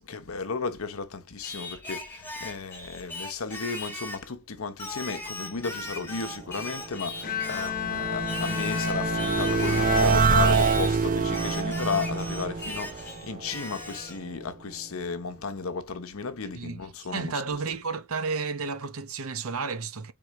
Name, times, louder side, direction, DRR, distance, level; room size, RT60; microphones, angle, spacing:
voice 1, 0.1-17.3, left 4 dB, 75° left, 0.8 m, -34 dB
Singing, 1.4-4.3 4.8-7.8 8.3-11.0 11.3-14.2, left 1 dB, 10° left, 1.3 m, -38 dB
sound 1, 6.8-14.0, right 5 dB, 40° right, 0.6 m, -26 dB
Bowed string instrument, 7.2-11.0, left 8 dB, 40° left, 0.8 m, -32 dB
voice 2, 16.5-20.1, right 4 dB, 75° right, 0.8 m, -32 dB
4.8 x 3.7 x 3.0 m
head